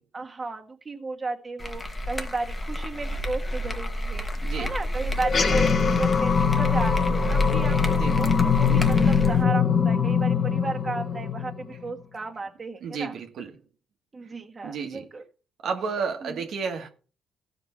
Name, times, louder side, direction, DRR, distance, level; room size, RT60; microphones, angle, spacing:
voice 1, 0.1-7.9 8.2-13.1 14.1-15.2 16.2-16.5, right 3 dB, 30° right, 1.6 m, -34 dB
sound 1, 1.6-9.4, equal, 25° left, 1.2 m, -29 dB
sound 2, 5.2-11.9, left 7 dB, 45° left, 1.0 m, -23 dB
voice 2, 12.8-13.5 14.6-15.0 15.6-16.9, right 5 dB, 70° right, 1.4 m, -31 dB
15.0 x 5.2 x 4.3 m
cardioid pair, 90°, 0 cm